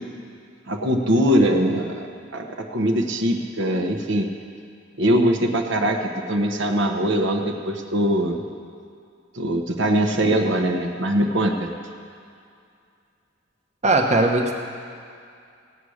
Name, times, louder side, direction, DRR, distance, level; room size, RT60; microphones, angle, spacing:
voice 1, 0.7-2.0 2.3-4.3 5.0-8.4 9.3-11.7, equal, 65° right, 2 dB, 1.1 m, -22 dB
voice 2, 13.8-14.5, right 2 dB, 35° right, 1 dB, 1.1 m, -18 dB
17.0 x 8.5 x 6.4 m, 2.4 s
head